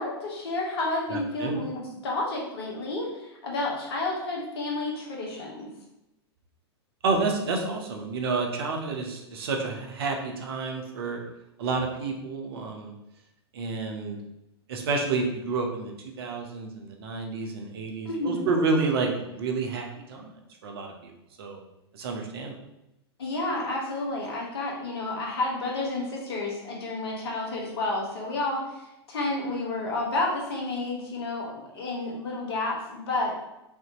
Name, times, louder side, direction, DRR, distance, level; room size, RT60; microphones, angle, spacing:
voice 1, 0.0-5.7 18.0-18.5 23.2-33.3, left 2 dB, 65° left, -2 dB, 1.4 m, -30 dB
voice 2, 1.1-1.6 7.0-11.2 11.6-12.9 13.5-14.2 14.7-15.9 16.2-20.3 20.6-21.1 21.4-21.6 21.9-22.6, right 4 dB, 60° right, 2 dB, 0.9 m, -29 dB
5.5 x 2.9 x 3.0 m, 0.89 s
figure-of-eight pair, 100°, 14 cm